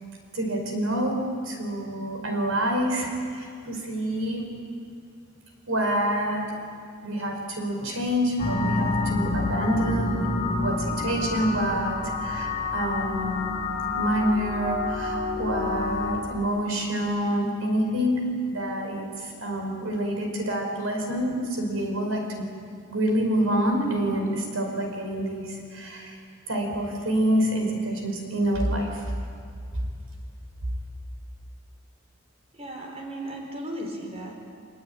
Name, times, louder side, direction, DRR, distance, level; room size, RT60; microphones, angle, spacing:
voice 1, 0.3-1.2 1.4-4.5 5.7-6.5 7.0-10.2 10.6-13.6 14.0-22.5 22.9-26.2 26.5-29.0, equal, 80° right, 2 dB, 5.2 m, -27 dB
sound 1, 8.4-16.2, left 2 dB, 35° left, 7.1 m, -28 dB
voice 2, 32.5-34.4, right 1 dB, 30° right, 1 dB, 4.6 m, -36 dB
26.5 x 21.0 x 9.2 m, 2.4 s
head